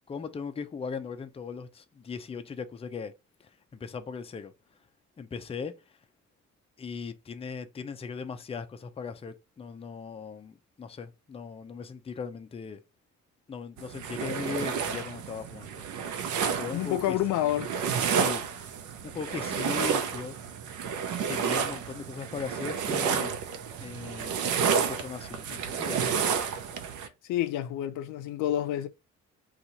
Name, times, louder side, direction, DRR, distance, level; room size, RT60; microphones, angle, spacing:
voice 1, 0.1-3.1 3.4-4.5 5.2-6.0 6.8-12.8 13.5-15.8 16.2-17.2 18.1-18.4 19.0-20.4 21.2-23.4 23.8-26.3, left 5 dB, 20° left, 0.4 m, -39 dB
sound 1, 13.8-27.1, right 6 dB, 75° right, 0.6 m, -30 dB
voice 2, 16.7-17.7 27.2-28.9, left 12 dB, 85° left, 0.5 m, -28 dB
2.8 x 2.4 x 3.9 m
cardioid pair, 90°, 30 cm